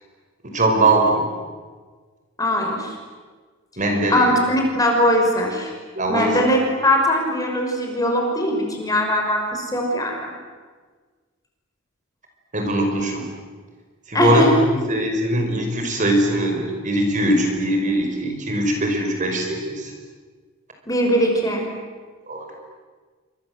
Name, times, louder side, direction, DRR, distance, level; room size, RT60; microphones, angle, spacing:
voice 1, 0.5-1.3 3.8-4.3 6.0-6.4 12.5-13.3 14.1-19.9 22.3-22.5, right 1 dB, 40° right, 3 dB, 5.1 m, -21 dB
voice 2, 2.4-2.9 4.1-5.7 6.1-6.6 6.8-10.3 14.1-14.5 20.9-21.6, left 1 dB, 20° left, 1 dB, 6.1 m, -20 dB
29.5 x 26.0 x 7.8 m, 1.5 s
head